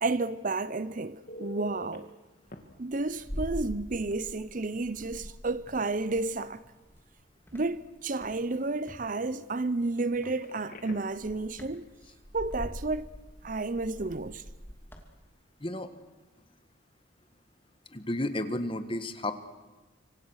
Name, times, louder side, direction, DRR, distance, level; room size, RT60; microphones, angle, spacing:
voice 1, 0.0-2.1 2.8-6.6 7.5-11.8 12.3-13.1 13.4-14.4, right 3 dB, 45° right, 0.7 m, -31 dB
Telephone, 1.3-2.0 2.5-2.6 4.4-4.5 4.9-5.1 10.4-11.2 18.3-18.5, left 1 dB, 45° left, 2.5 m, -45 dB
sound 1, 2.5-4.5 4.8-7.1 7.5-9.0 10.1-10.5 10.9-15.1, equal, 10° left, 2.7 m, -43 dB
voice 2, 17.9-19.3, left 1 dB, 25° left, 1.6 m, -32 dB
27.0 x 25.0 x 6.5 m
head